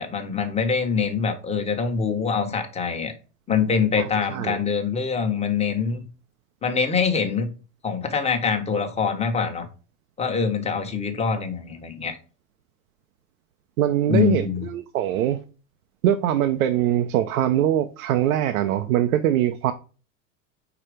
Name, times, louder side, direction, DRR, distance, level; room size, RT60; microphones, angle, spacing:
voice 1, 0.0-3.1 3.5-6.0 6.6-7.5 7.8-9.7 10.2-12.2 14.1-14.6, left 6 dB, 15° left, 1.1 m, -24 dB
voice 2, 4.0-4.6 13.8-15.4 16.0-19.7, right 11 dB, 90° right, 0.7 m, -22 dB
4.9 x 4.4 x 4.9 m
supercardioid pair, 125°, 41 cm